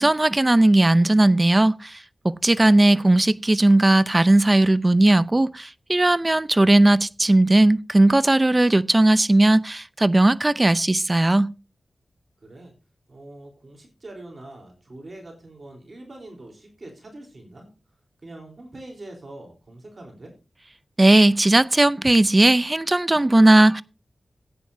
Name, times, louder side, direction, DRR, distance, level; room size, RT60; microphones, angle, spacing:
voice 1, 0.0-1.9 2.2-11.5 21.0-23.8, right 2 dB, 25° right, 0.6 m, -17 dB
voice 2, 12.4-12.7 13.1-17.7 18.2-20.3, right 2 dB, 45° right, 3.7 m, -43 dB
15.5 x 9.4 x 2.7 m
cardioid pair, 65°, 0 cm